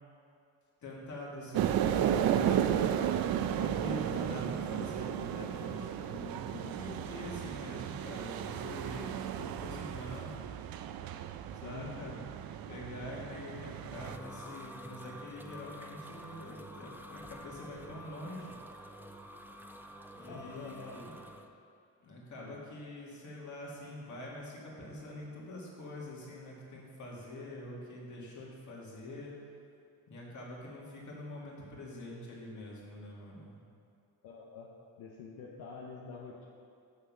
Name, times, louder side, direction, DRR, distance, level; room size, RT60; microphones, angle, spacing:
voice 1, 0.8-2.7 3.6-10.5 11.5-12.3 12.7-18.6 20.1-21.2 22.0-29.3 30.1-33.6, left 1 dB, 50° left, -4 dB, 2.2 m, -45 dB
sound 1, 1.5-14.2, right 10 dB, 70° right, 0.5 m, -34 dB
voice 2, 11.6-12.0 20.3-21.0 22.4-22.6 34.2-34.7 35.0-36.4, left 5 dB, 75° left, -2 dB, 1.0 m, -46 dB
sound 2, 13.5-21.5, equal, 5° right, 0.4 m, -49 dB
7.5 x 6.5 x 6.1 m, 2.5 s
cardioid pair, 125°, 38 cm